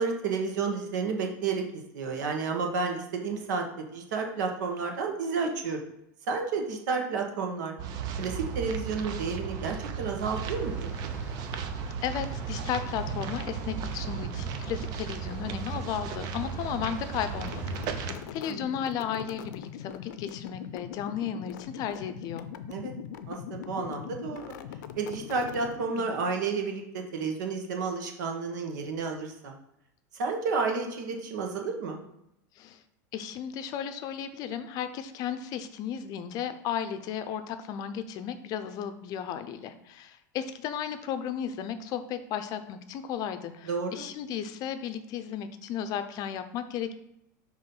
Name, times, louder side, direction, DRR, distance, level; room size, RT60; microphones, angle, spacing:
voice 1, 0.0-3.6 3.9-5.8 6.3-7.7 8.2-10.9 18.5-18.7 22.7-22.9 23.3-24.5 25.0-29.5 30.1-32.0 43.6-44.1, right 4 dB, 85° right, 3 dB, 1.4 m, -31 dB
sound 1, 7.8-18.1, right 6 dB, 45° right, 0.6 m, -35 dB
sound 2, 10.4-18.2, right 1 dB, 15° right, 1.8 m, -47 dB
voice 2, 12.0-22.5 32.6-32.8 33.1-46.9, left 9 dB, 40° left, 10 dB, 0.6 m, -34 dB
sound 3, 17.3-26.3, left 9 dB, 85° left, 0.5 m, -42 dB
5.7 x 3.1 x 5.4 m, 0.80 s
supercardioid pair, 140°, 10 cm